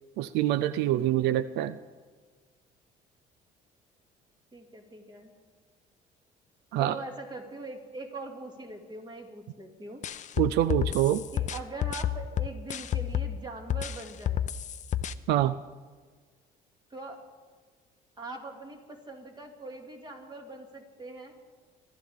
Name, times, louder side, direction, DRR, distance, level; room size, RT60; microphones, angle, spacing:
voice 1, 0.2-1.8 6.7-6.9 10.4-11.2 15.3-15.5, right 13 dB, 85° right, 15 dB, 0.4 m, -25 dB
voice 2, 4.5-5.3 6.8-10.0 11.3-14.4 16.9-17.2 18.2-21.4, right 2 dB, 25° right, 2 dB, 2.4 m, -42 dB
sound 1, 10.0-13.4 13.7-15.1, left 10 dB, 45° left, 0.6 m, -30 dB
24.0 x 12.5 x 3.6 m, 1.5 s
cardioid pair, 110°, 17 cm